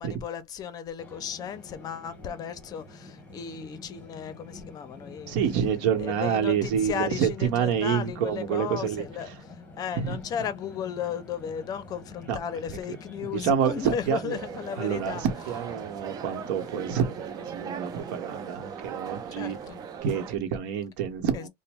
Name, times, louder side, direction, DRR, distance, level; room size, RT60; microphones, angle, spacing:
voice 1, 0.0-5.4 6.0-9.3 9.8-15.3 19.4-19.9 21.3-21.5, left 8 dB, 40° left, 0.6 m, -35 dB
sound 1, 1.0-20.0, left 2 dB, 15° left, 1.3 m, -47 dB
voice 2, 5.3-9.1 9.9-10.2 12.3-12.4 12.7-12.8 13.3-14.4 14.8-19.6 20.0-21.5, right 8 dB, 75° right, 0.9 m, -27 dB
sound 2, 14.3-20.3, right 8 dB, 40° right, 0.5 m, -39 dB
3.0 x 2.1 x 3.4 m
supercardioid pair, 130°, 10 cm